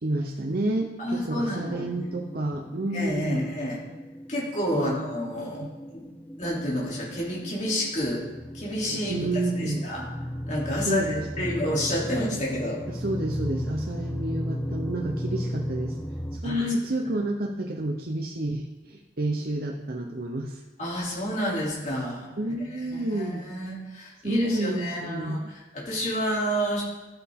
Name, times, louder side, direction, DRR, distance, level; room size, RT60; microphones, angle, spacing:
voice 1, 0.0-3.5 4.7-5.0 5.5-5.7 9.1-9.8 10.8-11.6 12.9-16.0 16.3-20.6 22.4-23.5 24.2-25.5, right 1 dB, 55° right, 2 dB, 0.7 m, -30 dB
voice 2, 1.0-2.1 2.9-3.8 4.3-5.7 5.9-6.0 6.4-8.2 8.5-9.3 9.6-10.0 10.5-12.8 16.4-16.7 20.8-22.4 22.7-26.8, equal, 40° left, -5 dB, 2.9 m, -29 dB
sound 1, 1.7-16.4, equal, 10° left, 0.4 m, -36 dB
13.0 x 8.9 x 3.6 m, 1.1 s
head